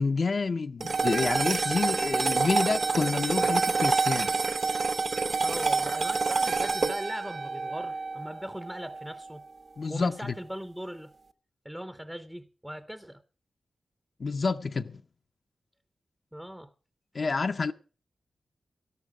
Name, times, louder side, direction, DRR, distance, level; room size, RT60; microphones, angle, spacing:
voice 1, 0.0-4.3 9.8-10.3 14.2-15.0 17.1-17.7, left 4 dB, 45° left, 0.5 m, -28 dB
sound 1, 0.8-9.3, right 4 dB, 45° right, 0.7 m, -28 dB
voice 2, 5.4-9.4 9.9-11.1 11.6-13.2 16.3-16.7, equal, 5° right, 0.6 m, -39 dB
12.5 x 12.0 x 4.8 m
wide cardioid pair, 170°, 0 cm